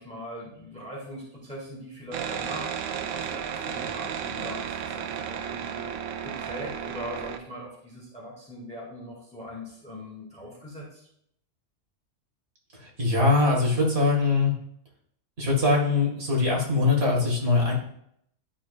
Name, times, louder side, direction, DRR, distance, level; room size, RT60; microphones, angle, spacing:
voice 1, 0.0-11.1, equal, 5° left, -4 dB, 1.9 m, -41 dB
sound 1, 2.1-7.4, right 8 dB, 80° right, 1.0 m, -33 dB
voice 2, 12.7-14.5 15.4-17.7, left 3 dB, 45° right, -2 dB, 2.1 m, -22 dB
11.0 x 4.6 x 2.4 m, 0.70 s
omnidirectional pair, 1.5 m